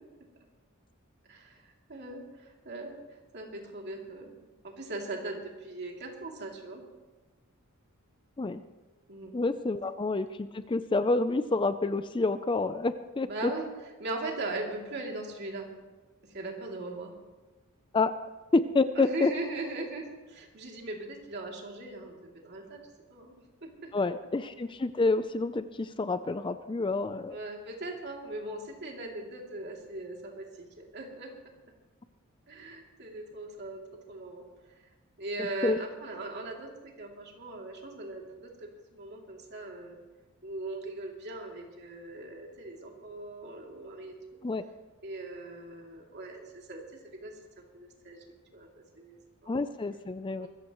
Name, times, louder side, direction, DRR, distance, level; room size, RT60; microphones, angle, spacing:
voice 1, 1.3-2.9 3.3-4.3 4.6-6.8 9.1-9.3 13.3-13.7 14.0-15.7 16.3-17.1 18.9-22.8 23.1-23.3 23.6-23.9 27.3-31.3 32.5-33.8 34.1-34.4 35.2-40.0 40.4-44.1 45.0-46.8 47.2-47.3 47.7-48.2 48.5-48.7 48.9-49.6 50.4-50.5, right 2 dB, 50° right, 0 dB, 2.8 m, -39 dB
voice 2, 9.3-13.5 17.9-18.1 18.5-19.3 23.9-27.4 35.4-35.8 44.4-44.6 49.5-50.5, left 3 dB, 20° left, 11 dB, 0.4 m, -28 dB
23.0 x 14.5 x 3.1 m, 1.2 s
head